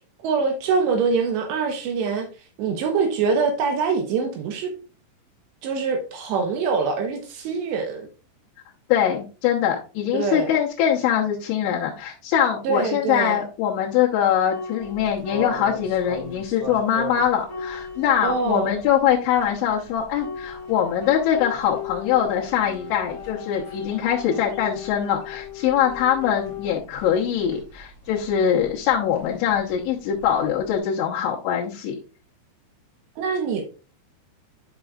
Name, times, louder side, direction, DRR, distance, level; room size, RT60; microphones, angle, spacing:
voice 1, 0.2-2.3 2.6-4.7 5.6-8.1 10.1-10.5 12.6-13.4 18.2-18.7 33.2-33.6, right 5 dB, 80° right, 3.1 m, -24 dB
voice 2, 8.9-32.0, left 9 dB, 90° left, 3.6 m, -23 dB
sound 1, 13.8-14.0 14.5-26.7, left 7 dB, 10° left, 1.7 m, -38 dB
sound 2, 14.8-30.8, right 2 dB, 20° right, 1.9 m, -43 dB
11.0 x 6.2 x 2.4 m
omnidirectional pair, 5.2 m